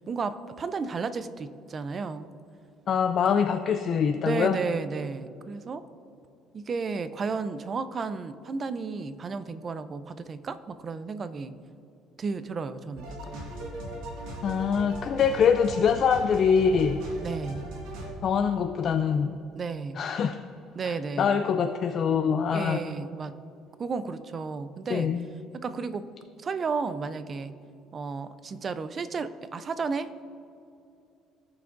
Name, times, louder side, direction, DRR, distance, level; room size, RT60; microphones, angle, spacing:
voice 1, 0.0-2.3 4.2-5.8 6.5-11.5 12.2-13.4 17.2-17.7 19.6-20.0 20.8-21.4 22.5-23.4 23.8-25.1 25.5-26.0 26.4-27.5 27.9-30.2, right 4 dB, 30° right, 13 dB, 0.4 m, -33 dB
voice 2, 2.9-4.6 14.4-17.0 18.2-19.4 20.0-20.4 20.8-22.8 24.9-25.3, left 7 dB, 40° left, 7 dB, 0.3 m, -24 dB
sound 1, 13.0-18.1, right 1 dB, 90° right, 1.8 m, -39 dB
17.0 x 5.9 x 2.5 m, 2.7 s
cardioid pair, 145°, 0 cm